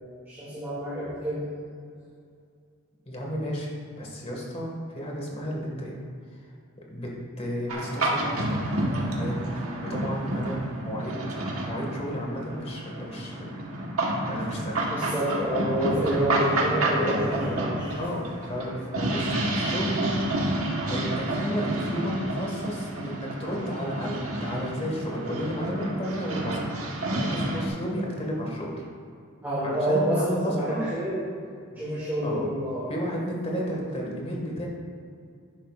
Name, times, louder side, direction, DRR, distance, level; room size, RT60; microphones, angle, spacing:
voice 1, 0.0-1.4 14.9-18.0 29.4-31.2 31.7-32.9, equal, 10° right, -11 dB, 2.3 m, -28 dB
voice 2, 3.1-3.7 4.0-6.0 6.9-8.5 9.1-9.5 9.8-14.8 17.0-17.6 18.0-20.1 20.8-26.7 27.1-28.8 29.6-30.8 32.2-32.5 32.9-34.7, equal, 30° left, -2 dB, 1.9 m, -32 dB
sound 1, 7.7-27.7, right 1 dB, 75° right, 1.4 m, -30 dB
11.0 x 9.9 x 2.5 m, 2.4 s
head